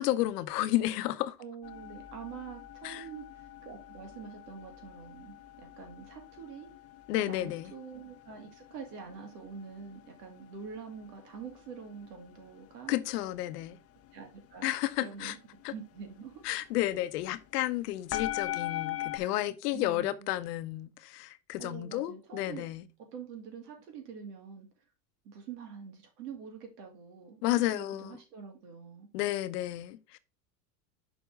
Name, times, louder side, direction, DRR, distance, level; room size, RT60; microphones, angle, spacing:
voice 1, 0.0-1.4 2.8-3.1 7.1-7.7 12.9-13.8 14.6-15.3 15.6-15.7 16.4-22.8 27.4-28.2 29.1-30.2, left 15 dB, 80° left, 0.9 m, -32 dB
voice 2, 1.4-6.7 7.3-12.9 14.1-15.4 15.7-16.4 19.1-19.3 19.7-20.1 21.6-22.7 23.1-24.7 25.2-29.1, right 6 dB, 80° right, 2.7 m, -45 dB
sound 1, 1.6-19.2, left 14 dB, 30° left, 0.7 m, -43 dB
6.5 x 4.4 x 4.7 m
supercardioid pair, 115°, 46 cm